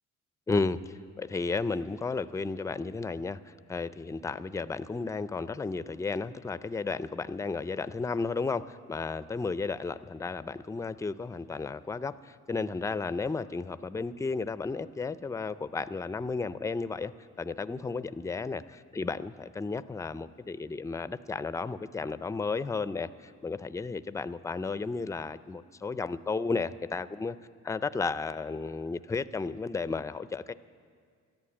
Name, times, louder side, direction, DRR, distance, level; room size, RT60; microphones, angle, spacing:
voice 1, 0.5-0.8 1.2-27.4 27.6-30.5, left 4 dB, 10° left, 14 dB, 0.4 m, -33 dB
13.5 x 11.5 x 8.7 m, 2.1 s
cardioid pair, 90°, 30 cm